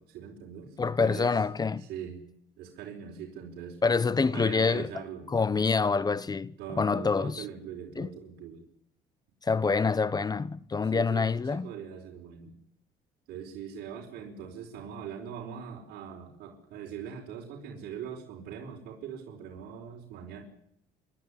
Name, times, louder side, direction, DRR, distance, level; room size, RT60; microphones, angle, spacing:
voice 1, 0.0-1.3 1.8-2.2 2.6-5.3 6.6-8.6 10.8-12.5 13.3-20.4, right 8 dB, 75° right, 4.8 m, -42 dB
voice 2, 0.8-1.8 3.8-4.9 5.3-7.4 8.0-8.1 9.4-11.7, left 4 dB, 25° left, 0.9 m, -26 dB
27.5 x 12.0 x 9.9 m
cardioid pair, 110°, 17 cm